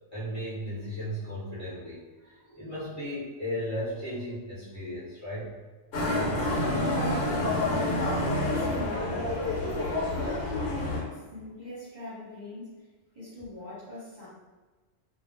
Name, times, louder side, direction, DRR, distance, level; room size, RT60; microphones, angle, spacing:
voice 1, 0.1-5.6 11.5-11.6, equal, 15° left, -11 dB, 0.6 m, -36 dB
Motorcycle, 5.9-11.0, left 1 dB, 60° left, 1.0 m, -28 dB
voice 2, 8.3-9.4 10.0-12.9 13.1-14.3, left 1 dB, 40° right, -9 dB, 0.9 m, -41 dB
2.3 x 2.0 x 3.2 m, 1.3 s
omnidirectional pair, 1.3 m